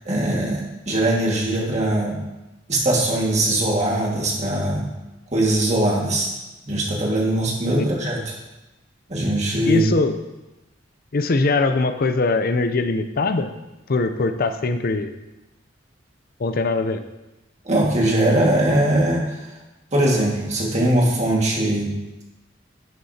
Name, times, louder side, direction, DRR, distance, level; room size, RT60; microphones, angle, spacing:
voice 1, 0.0-2.2 2.7-4.8 5.3-6.3 6.6-8.2 9.1-9.8 17.6-19.5 19.9-21.9, right 1 dB, 40° right, -3 dB, 1.9 m, -21 dB
voice 2, 9.7-10.2 11.1-13.5 13.9-15.1 16.4-17.0, left 3 dB, 50° left, 9 dB, 0.6 m, -21 dB
10.5 x 6.6 x 2.8 m, 1.0 s
head